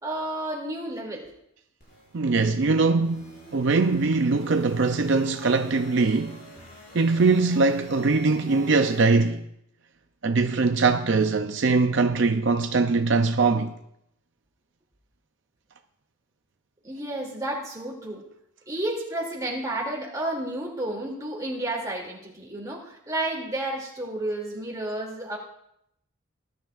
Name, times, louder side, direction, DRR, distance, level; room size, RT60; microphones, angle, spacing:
voice 1, 0.0-1.3 16.8-18.2 18.7-25.4, right 1 dB, 15° right, 2.7 m, -31 dB
sound 1, 1.8-9.0, equal, 50° left, 5.8 m, -47 dB
voice 2, 2.1-6.4 6.9-9.4 10.2-13.7, right 3 dB, 60° right, 0.5 m, -22 dB
19.5 x 11.5 x 2.5 m
head